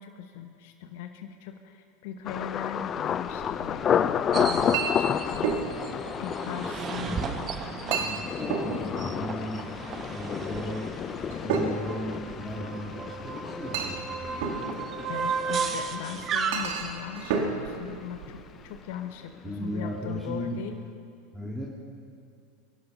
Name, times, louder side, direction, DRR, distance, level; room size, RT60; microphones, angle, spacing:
voice 1, 0.0-5.6 6.2-7.2 15.1-18.4 18.6-20.8, left 9 dB, 65° left, 6 dB, 1.0 m, -39 dB
Thunder, 2.3-18.0 18.3-18.9 19.3-19.6, left 8 dB, 35° left, 0.5 m, -32 dB
Chink clink, 3.3-18.8, right 5 dB, 65° right, 2.0 m, -35 dB
sound 1, 4.3-17.0, right 6 dB, 35° right, 1.2 m, -35 dB
voice 2, 7.1-7.6 8.0-9.6 10.1-10.9 11.3-14.5 19.4-20.6 21.3-21.7, equal, 5° right, -5 dB, 2.4 m, -36 dB
22.5 x 11.5 x 5.5 m, 2.4 s
hypercardioid pair, 90°, 0 cm